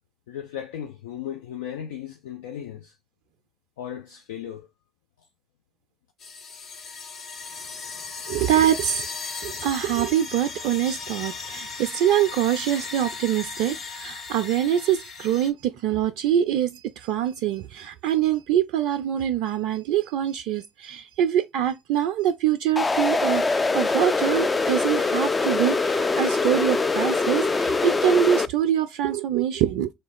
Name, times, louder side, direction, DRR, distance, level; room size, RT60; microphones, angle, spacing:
voice 1, 0.3-3.0 3.8-4.7, left 10 dB, 75° left, 0.6 m, -36 dB
sound 1, 6.2-15.5, left 4 dB, 50° left, 0.9 m, -36 dB
voice 2, 8.3-9.1 9.4-29.9, right 10 dB, 65° right, 0.3 m, -24 dB
sound 2, 22.8-28.5, left 3 dB, 25° left, 0.4 m, -23 dB
3.3 x 3.1 x 4.2 m
figure-of-eight pair, 55°, 0 cm